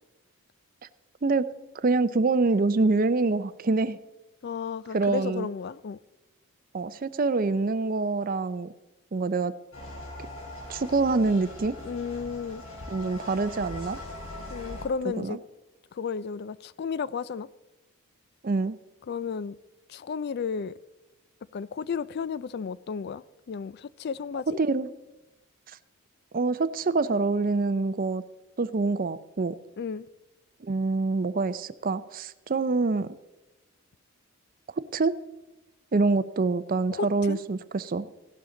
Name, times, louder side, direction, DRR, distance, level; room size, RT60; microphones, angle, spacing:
voice 1, 1.8-4.0 4.9-5.5 6.7-8.7 9.1-9.5 10.7-11.7 12.9-14.0 15.2-15.4 18.4-18.8 24.6-24.9 26.3-28.2 28.6-29.5 30.6-33.2 34.9-35.2 35.9-38.1, right 3 dB, 40° right, 0.5 m, -25 dB
voice 2, 4.4-6.0 11.8-12.6 14.5-15.4 15.9-17.5 19.1-19.6 19.9-20.7 21.5-24.6 29.8-30.1 36.9-37.4, left 6 dB, 45° left, 0.3 m, -33 dB
sound 1, 9.7-14.9, left 1 dB, 70° left, 3.3 m, -41 dB
16.0 x 12.0 x 3.8 m
head